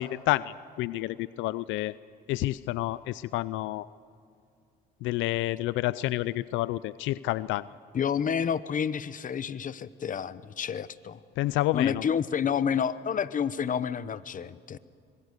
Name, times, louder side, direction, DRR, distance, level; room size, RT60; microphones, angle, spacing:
voice 1, 0.0-1.9 2.3-3.9 5.0-7.7 11.4-12.0, left 17 dB, 90° left, 17 dB, 0.5 m, -29 dB
voice 2, 7.9-11.2 11.7-14.8, left 7 dB, 45° left, 15 dB, 1.0 m, -29 dB
25.0 x 22.0 x 6.7 m, 2.4 s
cardioid pair, 85°, 19 cm